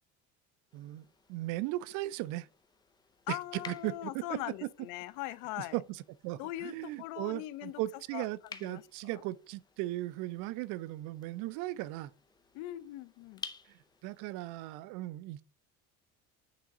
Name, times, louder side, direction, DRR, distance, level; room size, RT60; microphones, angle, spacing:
sound 1, 0.7-14.2, left 5 dB, 15° left, 0.5 m, -54 dB
voice 1, 0.7-2.5 3.3-4.4 5.6-12.1 13.7-15.4, right 17 dB, 75° right, 0.5 m, -37 dB
voice 2, 3.3-5.7 6.4-7.8 8.1-8.3 8.7-8.8 12.5-13.4, left 16 dB, 75° left, 0.6 m, -40 dB
8.6 x 3.7 x 4.1 m
cardioid pair, 160°, 31 cm